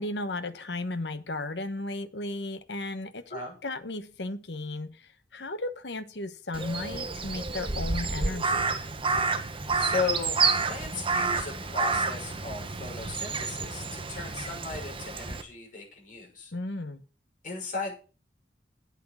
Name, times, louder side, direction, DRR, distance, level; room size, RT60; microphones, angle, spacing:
voice 1, 0.0-8.8 16.5-17.0, left 2 dB, 80° left, 11 dB, 1.1 m, -35 dB
Crow, 6.5-15.4, right 4 dB, 30° right, 1.1 m, -29 dB
voice 2, 9.3-16.5 17.4-17.9, left 4 dB, 50° left, -1 dB, 6.1 m, -36 dB
8.6 x 8.2 x 5.7 m, 0.36 s
head